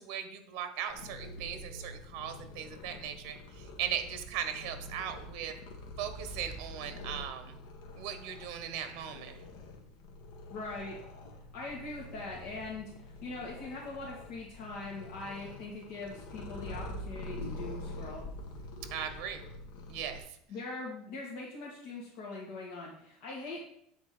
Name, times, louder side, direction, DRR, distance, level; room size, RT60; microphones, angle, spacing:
voice 1, 0.0-5.5 6.0-7.6 8.0-9.4 18.9-19.4 19.9-20.4, right 9 dB, 55° right, 8 dB, 1.2 m, -38 dB
Purr, 0.9-20.2, left 1 dB, 70° left, 1.6 m, -46 dB
voice 2, 10.5-11.0 11.5-12.9 13.2-18.2 20.5-23.6, left 3 dB, 55° left, -5 dB, 1.9 m, -41 dB
8.6 x 4.3 x 6.1 m, 0.73 s
cardioid pair, 165°, 0 cm